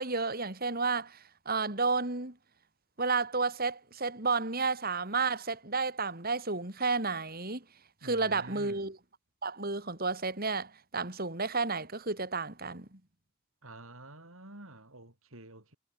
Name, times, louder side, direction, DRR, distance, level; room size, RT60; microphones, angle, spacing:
voice 1, 0.0-2.4 3.0-7.6 8.0-9.0 9.4-13.0, right 4 dB, 40° right, 3.3 m, -31 dB
voice 2, 8.0-8.9 13.6-15.7, right 1 dB, 65° right, 4.9 m, -49 dB
head